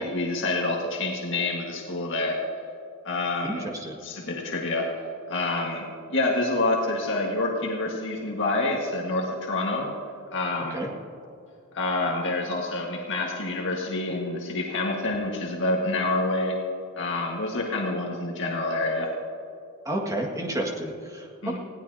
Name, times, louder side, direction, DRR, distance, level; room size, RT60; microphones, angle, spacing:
voice 1, 0.0-2.4 3.0-3.6 4.0-4.9 5.3-5.8 6.1-9.9 10.3-10.8 11.7-16.6 17.0-19.1 21.4-21.6, left 2 dB, 60° left, -1 dB, 1.7 m, -27 dB
voice 2, 3.4-4.0 10.7-10.9 19.8-21.3, right 1 dB, 15° right, 0 dB, 1.9 m, -30 dB
20.5 x 17.0 x 2.8 m, 2.5 s
head